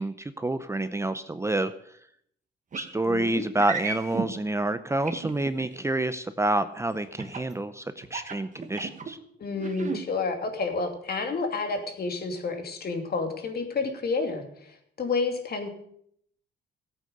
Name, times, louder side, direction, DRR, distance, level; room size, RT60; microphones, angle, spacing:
voice 1, 0.0-1.7 2.8-9.2, right 2 dB, 15° right, 11 dB, 0.7 m, -28 dB
Wiping Window, 2.7-2.9 3.6-4.3 5.1-5.7 7.2-7.5 8.0-9.1 9.6-10.0, right 5 dB, 40° right, 1.9 m, -33 dB
voice 2, 3.0-3.5 9.4-15.7, left 4 dB, 50° left, 4 dB, 2.7 m, -30 dB
15.0 x 8.5 x 6.6 m, 0.69 s
cardioid pair, 90°, 20 cm